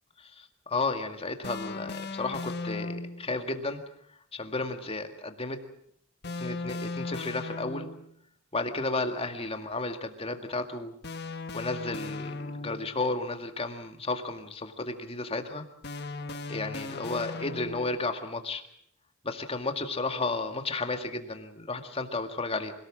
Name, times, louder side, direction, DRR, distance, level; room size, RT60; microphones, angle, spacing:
voice 1, 0.2-3.8 4.3-5.6 6.4-7.9 8.5-10.9 11.5-15.7 16.5-18.6 19.2-22.7, left 3 dB, 30° left, 7 dB, 2.0 m, -33 dB
sound 1, 1.4-3.3 6.2-8.1 11.0-13.0 15.8-18.0, left 3 dB, 55° left, 1.4 m, -37 dB
26.0 x 18.5 x 7.4 m, 0.69 s
head